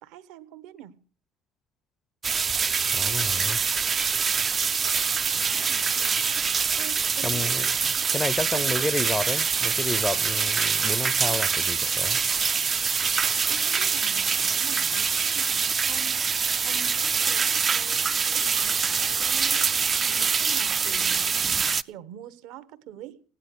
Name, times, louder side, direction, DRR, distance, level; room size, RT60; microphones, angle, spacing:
voice 1, 0.0-1.0 5.3-6.1 6.7-7.6 8.5-8.9 13.5-19.7 20.1-23.2, right 11 dB, 70° right, 1.2 m, -45 dB
sound 1, 2.2-21.8, right 6 dB, 35° right, 0.6 m, -25 dB
voice 2, 2.9-3.6 7.2-7.7 8.1-12.2, left 2 dB, 15° left, 0.8 m, -30 dB
16.0 x 10.0 x 7.1 m
hypercardioid pair, 65°, 0 cm